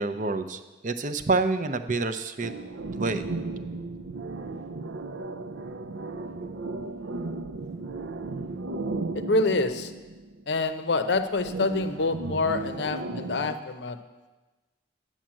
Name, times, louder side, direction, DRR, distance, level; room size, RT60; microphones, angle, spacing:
voice 1, 0.0-2.5 3.0-3.3, right 3 dB, 40° right, 10 dB, 0.6 m, -27 dB
sound 1, 2.4-10.6 11.4-13.6, right 3 dB, 90° right, 0.5 m, -35 dB
voice 2, 9.1-9.9 10.5-14.0, left 3 dB, 65° left, 9 dB, 0.7 m, -26 dB
9.2 x 7.3 x 7.5 m, 1.2 s
head